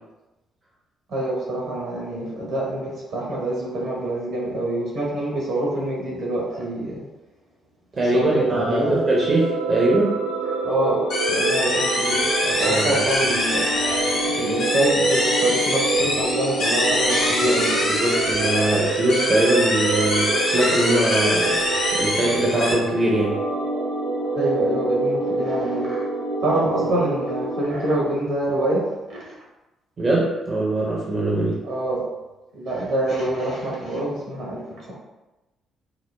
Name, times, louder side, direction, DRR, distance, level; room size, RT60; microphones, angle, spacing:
voice 1, 1.1-7.0 8.1-9.0 10.6-11.0 11.3-13.6 14.4-17.8 24.3-26.0 26.4-29.4 31.6-32.0 32.5-34.9, right 1 dB, 70° right, -5 dB, 1.3 m, -25 dB
voice 2, 7.9-10.2 12.7-12.9 17.3-17.5 17.9-23.4 30.0-31.6, right 1 dB, 40° right, -4 dB, 0.7 m, -22 dB
sound 1, 8.3-27.6, right 3 dB, 85° right, 0.5 m, -26 dB
sound 2, 11.1-22.7, left 1 dB, 80° left, 1.0 m, -24 dB
4.7 x 2.0 x 2.2 m, 1.0 s
hypercardioid pair, 45°, 0 cm